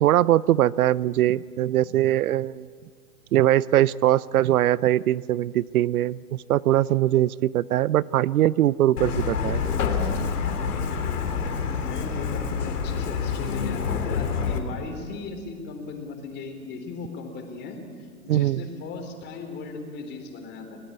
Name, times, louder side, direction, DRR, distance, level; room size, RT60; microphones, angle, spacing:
voice 1, 0.0-2.7 3.3-9.6 18.3-18.6, right 13 dB, 75° right, 21 dB, 0.6 m, -21 dB
Truck, 9.0-14.6, left 6 dB, 80° left, 3.7 m, -27 dB
voice 2, 11.8-20.8, left 3 dB, 25° left, 5 dB, 3.7 m, -37 dB
29.0 x 18.0 x 8.8 m, 2.1 s
hypercardioid pair, 150°, 44 cm